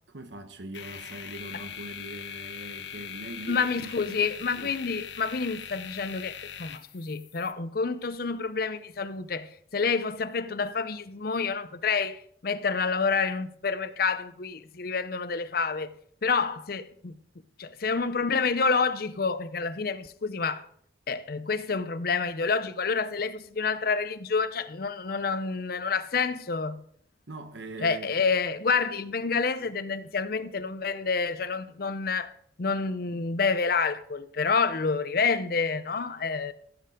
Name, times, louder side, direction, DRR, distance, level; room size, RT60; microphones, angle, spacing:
voice 1, 0.1-4.2 4.6-4.8 17.6-17.7 27.3-28.2, right 2 dB, 70° right, 1.0 m, -42 dB
sound 1, 0.7-7.5, left 8 dB, 70° left, 1.0 m, -41 dB
voice 2, 3.5-15.9 16.2-17.2 17.6-20.7 21.1-26.8 27.8-32.3 32.6-36.5, left 5 dB, 50° left, 0.6 m, -28 dB
14.5 x 6.8 x 5.1 m
head